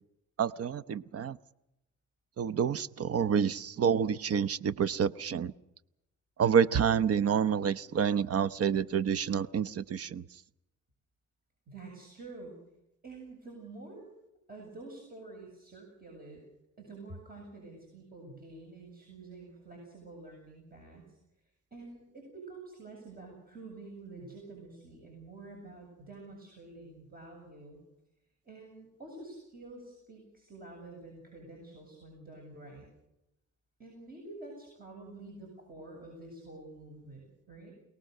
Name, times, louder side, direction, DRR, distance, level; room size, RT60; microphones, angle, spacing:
voice 1, 0.4-1.4 2.4-5.5 6.4-10.2, right 7 dB, 50° right, 17 dB, 0.8 m, -28 dB
voice 2, 11.7-12.6 13.0-14.1 14.5-16.4 16.8-21.2 21.7-27.8 28.4-32.9 33.8-37.7, right 2 dB, 30° right, 1 dB, 7.7 m, -48 dB
27.5 x 18.5 x 6.7 m, 0.89 s
cardioid pair, 90°, 30 cm